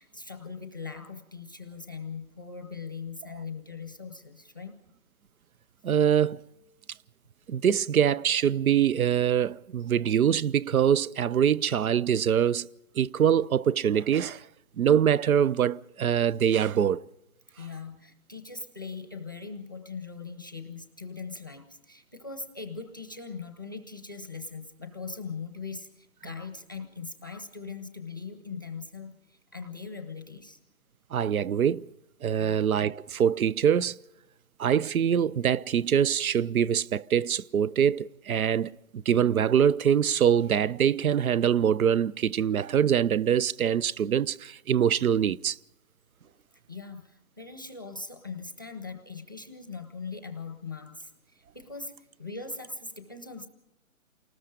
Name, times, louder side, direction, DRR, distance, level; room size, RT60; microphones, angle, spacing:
voice 1, 0.0-4.7 17.6-30.6 32.4-32.6 46.3-51.9 52.2-53.5, left 4 dB, 15° left, 0.7 m, -40 dB
voice 2, 5.8-6.4 7.5-12.7 13.0-14.5 14.8-17.0 31.1-31.9 32.2-34.0 34.6-45.6, right 8 dB, 85° right, 0.7 m, -24 dB
28.0 x 19.5 x 5.1 m
hypercardioid pair, 180°, 41 cm